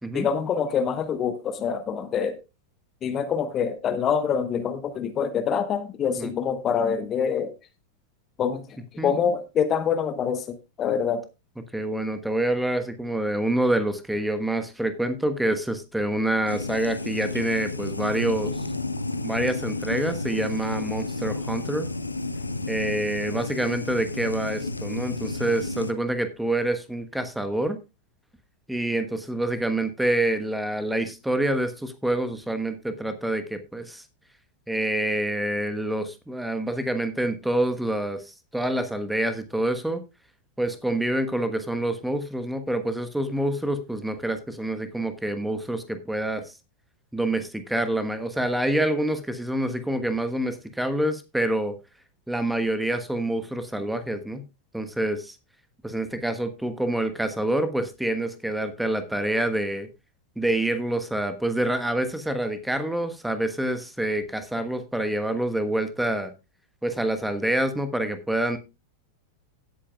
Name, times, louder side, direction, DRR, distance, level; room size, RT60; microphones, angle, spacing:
voice 1, 0.1-2.4 3.0-7.5 8.4-11.2, left 7 dB, 30° left, 1.1 m, -26 dB
voice 2, 11.7-18.7 19.2-21.9 22.7-27.8 28.7-34.0 34.7-40.0 40.6-46.5 47.1-51.7 52.3-54.5 54.7-55.3 55.8-59.9 60.4-66.3 66.8-68.6, right 1 dB, 5° right, 1.2 m, -27 dB
sound 1, 16.5-25.9, left 2 dB, 80° left, 0.9 m, -31 dB
16.5 x 8.5 x 2.3 m
figure-of-eight pair, 90°, 0 cm